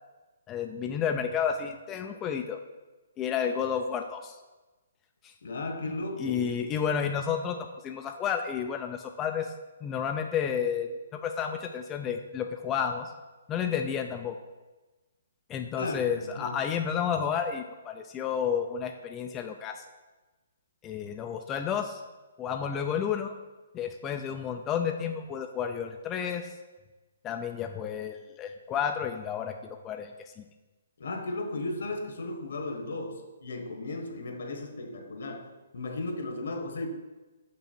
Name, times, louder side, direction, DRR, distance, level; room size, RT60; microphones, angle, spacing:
voice 1, 0.5-2.6 3.2-4.4 5.2-5.3 6.2-9.5 9.8-13.1 13.5-14.3 15.5-19.8 20.8-22.0 22.4-23.3 23.7-26.5 27.2-29.6 29.8-30.1 30.4-30.5, left 7 dB, 15° left, 5 dB, 0.3 m, -31 dB
voice 2, 5.4-6.5 15.8-16.6 31.0-36.9, left 2 dB, 70° left, 5 dB, 1.2 m, -35 dB
6.1 x 5.5 x 4.4 m, 1.2 s
hypercardioid pair, 160°, 0 cm